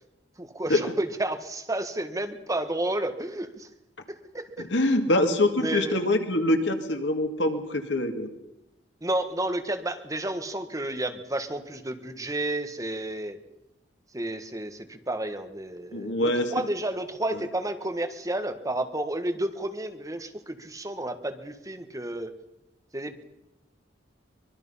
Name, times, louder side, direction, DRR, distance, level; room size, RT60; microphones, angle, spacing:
voice 1, 0.4-3.7 4.1-4.7 5.6-6.0 9.0-13.4 14.1-22.3 22.9-23.2, right 1 dB, 20° right, 7 dB, 1.5 m, -31 dB
voice 2, 4.7-8.3 15.9-16.5, left 1 dB, 85° left, 6 dB, 2.1 m, -24 dB
24.0 x 21.5 x 5.6 m, 0.89 s
head